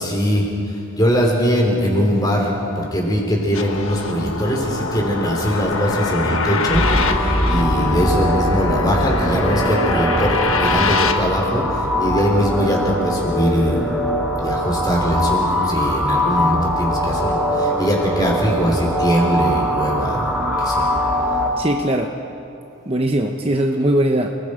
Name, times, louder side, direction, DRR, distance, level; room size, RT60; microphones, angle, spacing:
voice 1, 0.0-13.9 14.4-20.9, equal, 20° left, -1 dB, 3.9 m, -21 dB
sound 1, 3.5-11.2, left 4 dB, 70° left, 1.4 m, -24 dB
sound 2, 6.7-21.5, equal, ahead, 2.1 m, -21 dB
voice 2, 21.6-22.2 22.9-24.4, right 1 dB, 25° right, 3 dB, 0.9 m, -20 dB
30.0 x 21.0 x 5.1 m, 2.7 s
head